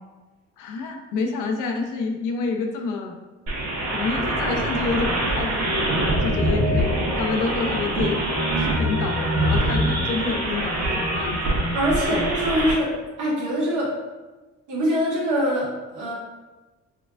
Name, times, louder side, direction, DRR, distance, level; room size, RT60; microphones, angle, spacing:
voice 1, 0.6-3.2 3.9-12.3, left 4 dB, 90° left, 3 dB, 0.5 m, -28 dB
sound 1, 3.5-12.7, right 1 dB, 60° right, 1.0 m, -24 dB
voice 2, 11.7-14.0 14.7-16.1, equal, 80° right, -5 dB, 1.3 m, -24 dB
4.3 x 2.4 x 2.4 m, 1.2 s
cardioid pair, 90°, 30 cm